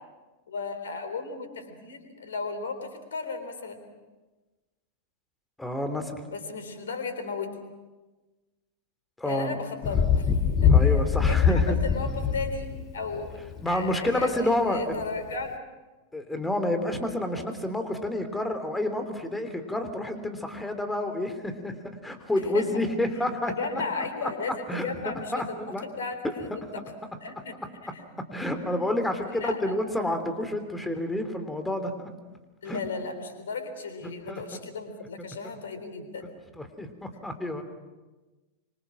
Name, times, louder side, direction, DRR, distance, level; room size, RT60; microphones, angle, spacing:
voice 1, 0.5-3.8 6.3-7.6 9.2-10.4 10.6-11.0 11.3-12.7 12.9-13.4 13.7-15.5 22.4-22.7 23.5-25.3 25.8-26.8 27.2-27.5 27.9-28.1 29.3-29.8 32.6-36.2, left 4 dB, 65° left, 8 dB, 3.8 m, -35 dB
voice 2, 5.6-6.2 9.2-9.6 10.7-11.8 13.6-15.0 16.1-24.0 24.7-25.9 28.3-32.1 32.6-32.8 34.3-34.4 36.6-37.6, left 1 dB, 5° left, 8 dB, 3.2 m, -29 dB
Thunder, 9.8-13.7 15.0-15.1, left 7 dB, 30° left, 2.1 m, -23 dB
26.0 x 25.5 x 6.3 m, 1.2 s
figure-of-eight pair, 90°, 0 cm